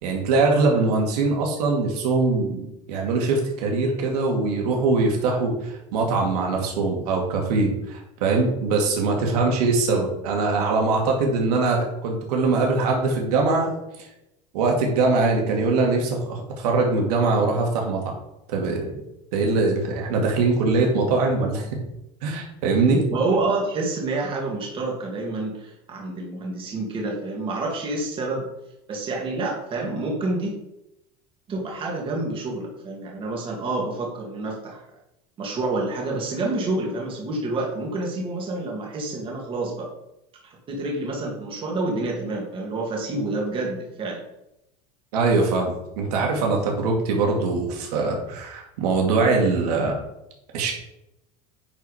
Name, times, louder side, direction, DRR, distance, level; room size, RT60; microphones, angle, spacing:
voice 1, 0.0-13.7 14.0-14.1 14.5-18.1 18.5-18.9 19.3-21.7 22.2-23.0 45.1-50.0 50.5-50.7, right 3 dB, 85° right, 1 dB, 2.4 m, -22 dB
voice 2, 23.1-28.5 28.9-30.6 31.5-34.8 35.4-39.9 40.4-44.2, right 2 dB, 25° right, -1 dB, 2.3 m, -28 dB
10.0 x 4.7 x 5.0 m, 0.87 s
supercardioid pair, 155°, 20 cm